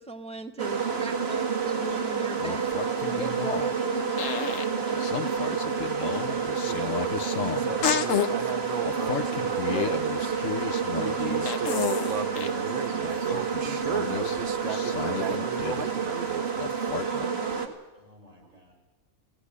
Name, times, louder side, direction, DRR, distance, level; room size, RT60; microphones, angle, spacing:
voice 1, 0.0-2.7 3.0-4.5 4.7-4.8 17.0-17.7, right 3 dB, 5° left, 7 dB, 0.5 m, -38 dB
sound 1, 0.6-17.7, right 6 dB, 45° right, 1.9 m, -29 dB
sound 2, 2.2-3.8 4.2-4.7 5.0-8.3 8.8-12.6 13.0-16.1 16.6-17.3, left 8 dB, 70° left, 1.4 m, -32 dB
voice 2, 4.9-5.2 5.6-5.7 6.2-6.5 17.9-18.7, right 1 dB, 25° right, -2 dB, 6.7 m, -48 dB
voice 3, 6.6-10.4 10.9-16.5, right 7 dB, 85° right, 10 dB, 1.5 m, -35 dB
17.0 x 16.0 x 9.8 m, 1.2 s
omnidirectional pair, 1.4 m